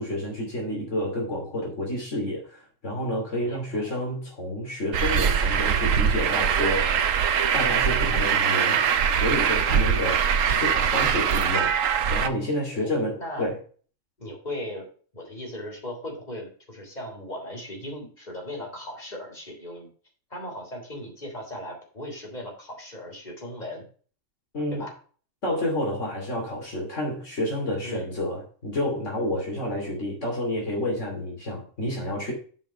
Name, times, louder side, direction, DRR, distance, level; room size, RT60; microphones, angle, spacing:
voice 1, 0.0-7.0 7.5-8.8 9.1-11.8 12.1-13.6 24.5-24.8 25.4-32.3, left 1 dB, 65° left, -1 dB, 3.1 m, -29 dB
voice 2, 3.4-3.9 12.7-12.9 13.2-13.5 14.2-14.9 15.1-19.9 20.3-23.8 24.7-24.9 27.8-28.2, left 1 dB, 35° left, -1 dB, 3.7 m, -37 dB
Truck, 4.9-12.3, right 7 dB, 85° right, 1.2 m, -22 dB
7.5 x 5.2 x 6.6 m, 0.41 s
omnidirectional pair, 1.3 m